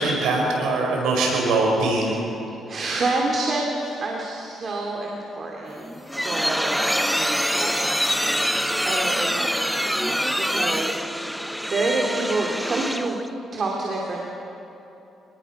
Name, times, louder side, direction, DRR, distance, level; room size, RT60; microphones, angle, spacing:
voice 1, 0.0-2.2, right 2 dB, 90° right, -1 dB, 5.5 m, -22 dB
voice 2, 2.7-8.0 8.4-11.0 11.6-13.2 13.5-14.2, right 2 dB, 45° right, -1 dB, 3.0 m, -28 dB
sound 1, 5.7-13.3, equal, ahead, 0.7 m, -25 dB
27.0 x 19.5 x 6.2 m, 2.9 s
cardioid pair, 90°, 0 cm